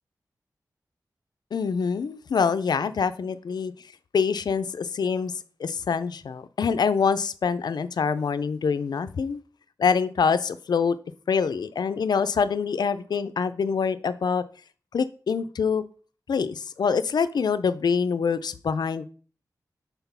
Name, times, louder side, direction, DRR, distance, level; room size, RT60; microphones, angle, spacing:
voice 1, 1.5-3.7 4.1-9.4 9.8-11.0 11.3-14.4 14.9-15.8 16.3-19.1, left 6 dB, 80° left, 12 dB, 0.5 m, -25 dB
5.9 x 4.0 x 5.5 m, 0.40 s
wide cardioid pair, 85°, 7 cm